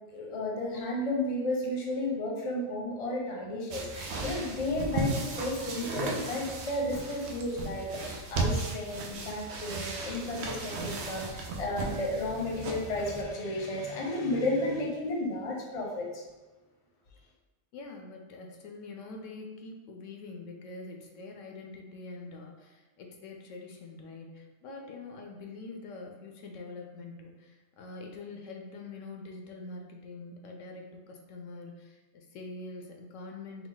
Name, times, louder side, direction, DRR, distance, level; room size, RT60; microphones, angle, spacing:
voice 1, 0.1-16.2, left 1 dB, 35° left, -2 dB, 0.7 m, -33 dB
sound 1, 3.7-13.2, right 3 dB, 65° right, 0.8 m, -36 dB
voice 2, 17.7-33.7, left 3 dB, 85° left, 2 dB, 1.0 m, -44 dB
4.6 x 2.0 x 3.8 m, 1.2 s
omnidirectional pair, 1.3 m